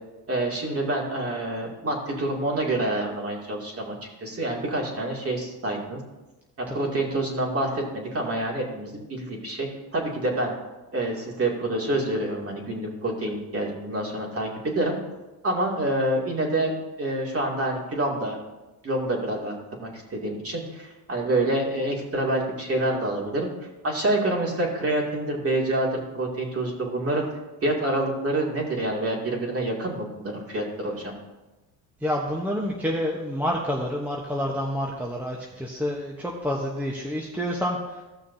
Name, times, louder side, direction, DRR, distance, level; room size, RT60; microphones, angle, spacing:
voice 1, 0.3-6.0 6.6-10.5 10.9-15.0 15.4-16.7 17.0-18.4 18.8-23.5 23.8-27.3 27.6-31.1, right 1 dB, 30° right, -2 dB, 2.6 m, -27 dB
voice 2, 32.0-38.0, equal, 5° right, -2 dB, 1.0 m, -28 dB
15.5 x 6.3 x 2.8 m, 1.1 s
cardioid pair, 105°, 43 cm